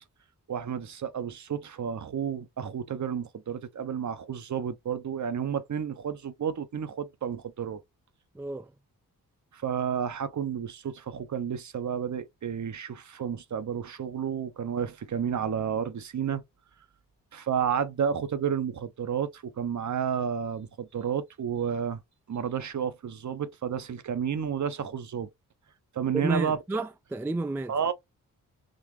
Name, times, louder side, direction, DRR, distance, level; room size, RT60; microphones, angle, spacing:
voice 1, 0.5-7.8 9.5-16.4 17.3-22.0 22.3-25.3 25.9-26.6 27.7-27.9, right 8 dB, 50° right, 0.7 m, -31 dB
voice 2, 8.3-8.7 26.1-27.7, right 2 dB, 5° right, 0.3 m, -31 dB
3.8 x 2.5 x 3.1 m
cardioid pair, 55°, 38 cm